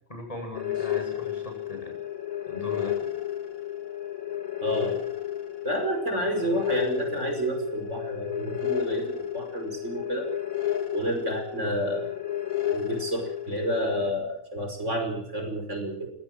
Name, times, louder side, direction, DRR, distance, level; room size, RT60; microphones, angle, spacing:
voice 1, 0.1-2.0 2.5-3.1, left 1 dB, 25° left, 3 dB, 8.3 m, -39 dB
sound 1, 0.5-14.1, left 11 dB, 80° left, 2.5 m, -32 dB
voice 2, 4.6-5.0 5.6-10.3 10.9-12.1 12.6-16.1, right 1 dB, 60° right, 5 dB, 5.8 m, -30 dB
24.5 x 18.0 x 7.7 m, 0.68 s
omnidirectional pair, 1.4 m